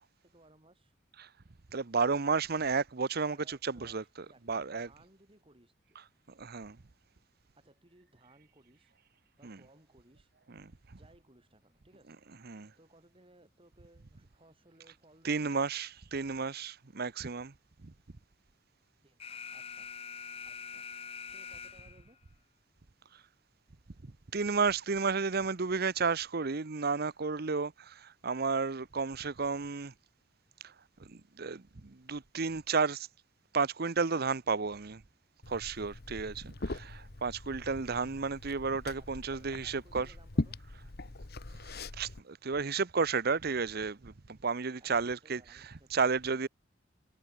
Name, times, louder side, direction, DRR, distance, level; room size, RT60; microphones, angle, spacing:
voice 1, 0.2-0.9 3.2-6.0 7.5-8.9 9.4-10.3 10.9-12.2 12.8-15.5 19.0-19.9 20.4-20.9 21.2-22.2 38.9-40.6 44.8-46.0, right 1 dB, 30° right, 6.5 m, -62 dB
voice 2, 1.7-4.9 6.4-6.8 9.4-9.6 10.5-11.0 12.4-12.7 15.2-17.5 17.8-17.9 23.1-23.2 24.0-29.9 30.6-30.7 31.0-33.1 33.5-35.0 35.5-40.1 41.7-46.5, right 4 dB, 55° right, 0.8 m, -32 dB
Alarm, 19.2-22.2, left 6 dB, 30° left, 0.8 m, -44 dB
Liquid, 35.4-42.2, left 2 dB, 55° left, 1.3 m, -41 dB
head